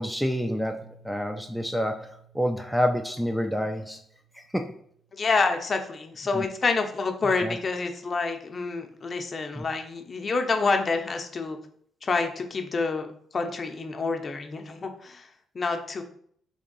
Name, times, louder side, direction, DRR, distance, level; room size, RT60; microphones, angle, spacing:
voice 1, 0.0-4.0 4.3-4.8 6.3-6.5 7.4-7.6 9.6-9.7, equal, ahead, 4 dB, 0.3 m, -28 dB
Piano, 0.8-6.4, right 8 dB, 70° right, 1.2 m, -58 dB
voice 2, 5.2-11.6 12.0-15.3 15.5-16.0, left 4 dB, 40° left, 5 dB, 0.6 m, -28 dB
3.5 x 2.8 x 3.9 m, 0.63 s
cardioid pair, 90°, 0 cm